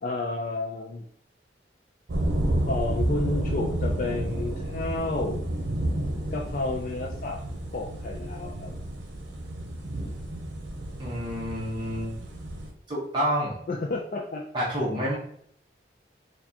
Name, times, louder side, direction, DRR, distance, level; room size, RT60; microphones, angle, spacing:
voice 1, 0.0-1.0 2.7-5.4 6.3-7.4 7.7-8.7 13.7-14.4, left 2 dB, 45° left, -1 dB, 0.4 m, -31 dB
sound 1, 2.1-12.7, right 1 dB, 85° right, 0.7 m, -31 dB
voice 2, 11.0-12.1 12.9-13.6 14.5-15.2, equal, 25° right, -7 dB, 0.9 m, -28 dB
4.6 x 2.3 x 2.7 m, 0.64 s
head